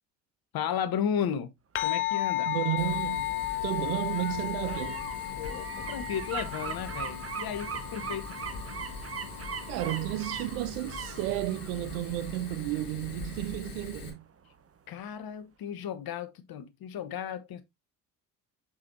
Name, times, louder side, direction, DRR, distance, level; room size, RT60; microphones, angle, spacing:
voice 1, 0.5-1.5 1.8-2.5 5.4-8.3 14.9-17.6, left 8 dB, 50° left, 1.2 m, -34 dB
sound 1, 1.8-10.4, left 16 dB, 30° left, 0.4 m, -35 dB
sound 2, 1.8-14.6 15.0-15.1, right 6 dB, 30° right, 1.1 m, -42 dB
voice 2, 2.5-3.3 3.6-5.0 9.7-14.2, right 17 dB, 70° right, 0.5 m, -32 dB
Fire, 2.8-14.1, left 4 dB, 80° left, 2.3 m, -43 dB
6.2 x 6.2 x 2.7 m
hypercardioid pair, 55°, 46 cm